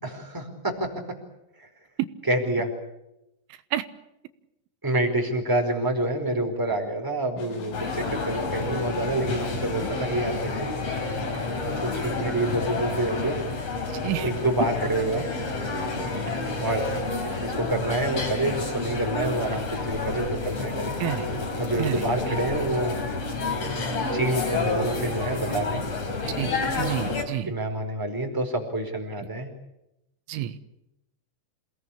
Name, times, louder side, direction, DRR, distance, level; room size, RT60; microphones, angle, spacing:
voice 1, 0.0-0.9 1.6-1.7 2.3-2.7 4.8-10.7 11.8-13.5 14.2-15.2 16.6-16.9 17.4-20.9 21.6-23.0 24.1-25.8 27.5-29.5, right 1 dB, 5° right, 3 dB, 4.2 m, -27 dB
sound 1, 7.4-10.5, left 7 dB, 80° left, 5.7 m, -41 dB
sound 2, 7.7-27.2, left 3 dB, 35° left, 4.4 m, -29 dB
voice 2, 21.8-22.4 26.4-27.5 30.3-30.6, right 13 dB, 85° right, 10 dB, 3.6 m, -30 dB
28.0 x 19.0 x 8.7 m, 0.88 s
omnidirectional pair, 5.5 m